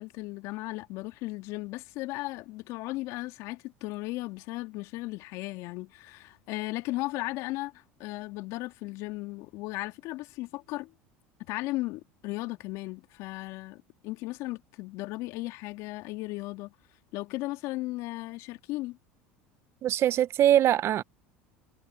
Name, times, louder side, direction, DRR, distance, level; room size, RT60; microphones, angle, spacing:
voice 1, 0.0-10.9 11.4-16.7 17.1-19.0, left 20 dB, 65° left, 2.2 m, -36 dB
voice 2, 19.8-21.0, right 11 dB, 50° right, 1.0 m, -22 dB
hypercardioid pair, 85°, 6 cm